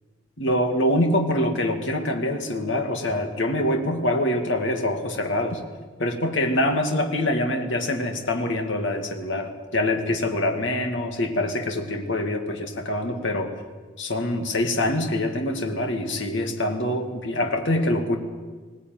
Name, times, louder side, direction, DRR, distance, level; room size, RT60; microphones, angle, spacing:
voice 1, 0.4-5.6 6.0-13.5 14.0-18.2, left 1 dB, 65° left, 4 dB, 2.4 m, -25 dB
20.0 x 18.5 x 9.4 m, 1.4 s
head